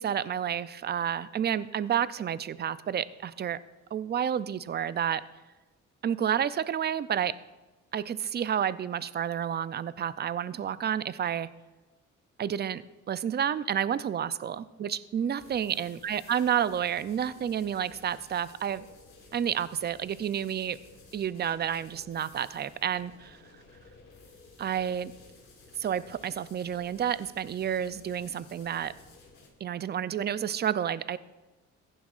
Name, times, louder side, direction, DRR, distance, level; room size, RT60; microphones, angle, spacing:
voice 1, 0.0-3.6 3.9-5.2 6.0-7.4 7.9-11.5 12.4-12.8 13.1-18.8 19.3-20.8 21.1-23.4 24.6-25.1 25.8-28.9 29.6-31.2, right 9 dB, 35° right, 16 dB, 0.4 m, -30 dB
sound 1, 15.4-29.5, left 3 dB, 40° left, 3.7 m, -54 dB
15.5 x 11.0 x 2.5 m, 1.2 s
cardioid pair, 90°, 30 cm